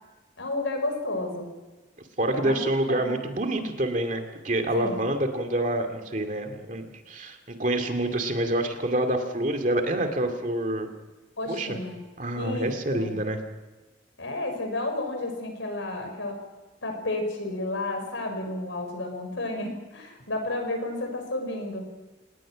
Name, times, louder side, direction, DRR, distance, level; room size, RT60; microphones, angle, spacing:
voice 1, 0.4-1.5 2.3-2.6 2.9-3.2 4.7-5.0 11.4-12.0 12.3-13.1 14.2-16.4 16.8-22.0, left 2 dB, 90° left, 4 dB, 6.1 m, -31 dB
voice 2, 2.2-10.9 11.5-11.8 12.2-13.4, right 1 dB, 40° right, 5 dB, 2.4 m, -27 dB
27.5 x 19.0 x 6.3 m, 1.2 s
head